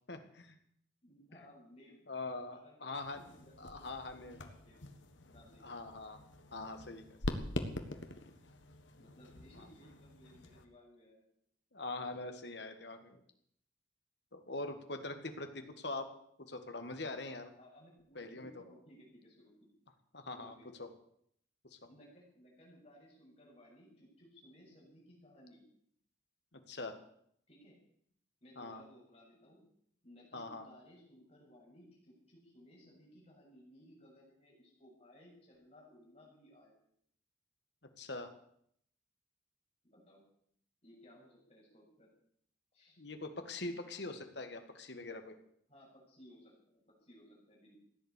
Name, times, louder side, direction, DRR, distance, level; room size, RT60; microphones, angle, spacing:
voice 1, 0.1-0.5 2.1-3.2 3.6-4.4 5.6-6.2 6.5-7.5 11.7-13.2 14.3-16.1 16.4-17.5 18.2-18.5 20.1-20.5 20.8-20.9 21.7-21.8 26.7-27.0 28.6-28.8 30.3-30.7 38.0-38.3 43.0-45.3, left 2 dB, 60° left, 7 dB, 2.0 m, -43 dB
voice 2, 1.0-4.9 5.3-5.8 9.0-11.2 12.1-12.2 17.6-19.7 20.4-20.7 21.8-25.6 27.5-27.8 28.4-29.7 30.0-36.8 39.8-40.2 40.8-42.1 42.7-43.0 45.7-47.8, equal, 30° left, -4 dB, 7.6 m, -60 dB
sound 1, 2.9-10.7, left 1 dB, 75° left, 1.6 m, -45 dB
16.0 x 10.5 x 8.4 m, 0.67 s
head